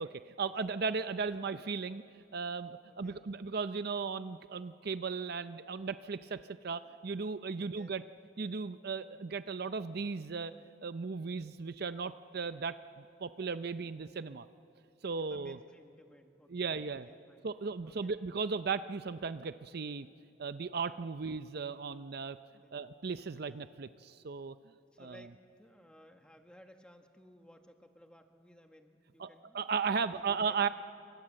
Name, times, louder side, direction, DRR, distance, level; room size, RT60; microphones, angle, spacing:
voice 1, 0.0-2.0 2.3-8.0 8.4-10.5 10.8-14.5 15.0-15.6 16.5-17.1 17.4-20.1 20.4-22.4 22.7-24.6 25.0-25.3 29.2-29.3 29.5-30.7, right 5 dB, 55° right, 12 dB, 0.6 m, -36 dB
voice 2, 2.8-3.2 7.6-8.0 15.2-16.7 17.0-17.4 17.8-18.1 22.4-22.8 24.9-29.7 30.0-30.7, equal, 5° left, 4 dB, 1.6 m, -59 dB
29.0 x 25.5 x 7.6 m, 2.5 s
head